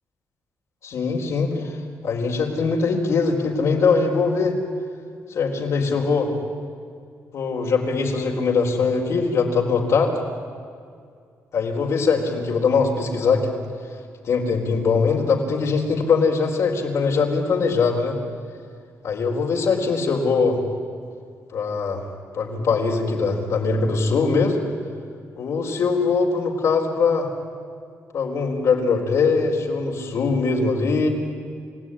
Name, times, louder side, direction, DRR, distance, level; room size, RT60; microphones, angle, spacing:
voice 1, 0.8-1.8 2.0-4.5 5.3-6.3 7.3-10.1 11.5-13.5 14.2-18.2 19.0-20.6 21.5-22.0 22.3-24.6 25.4-27.3 28.1-31.1, left 4 dB, 60° left, 0 dB, 4.2 m, -21 dB
29.5 x 16.5 x 10.0 m, 2.2 s
cardioid pair, 130°, 6 cm